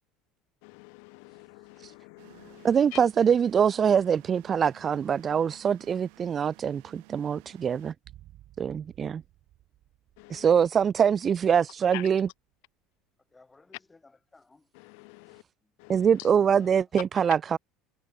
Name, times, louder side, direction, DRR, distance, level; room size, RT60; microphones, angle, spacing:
voice 1, 0.6-2.7 10.2-10.5 11.9-12.1 14.8-15.4 15.8-16.0, left 40 dB or more, 75° left, 0.4 m, -46 dB
sound 1, 2.2-7.9, right 37 dB, 75° right, 3.0 m, -55 dB
voice 2, 2.6-7.9 8.6-9.2 10.3-12.3 15.9-17.6, right 7 dB, 25° right, 0.4 m, -24 dB
sound 2, 8.0-12.3 12.5-12.6, right 14 dB, 45° right, 2.3 m, -56 dB
voice 3, 13.3-14.7 15.6-15.9 16.3-16.8, left 3 dB, 10° left, 5.3 m, -58 dB
cardioid pair, 150°, 0 cm